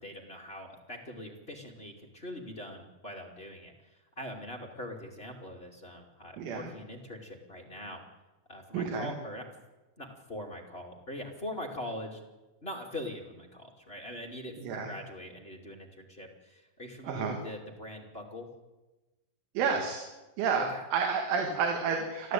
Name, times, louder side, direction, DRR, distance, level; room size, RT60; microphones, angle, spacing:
voice 1, 0.0-8.0 8.5-9.5 10.0-12.2 12.6-18.5 20.5-20.9, left 1 dB, 25° left, 0 dB, 1.3 m, -42 dB
voice 2, 6.4-6.7 8.7-9.1 14.6-14.9 17.0-17.4 19.6-20.0 20.4-22.3, right 5 dB, 80° right, 3 dB, 4.6 m, -30 dB
30.0 x 12.5 x 9.3 m, 1.1 s
omnidirectional pair, 5.5 m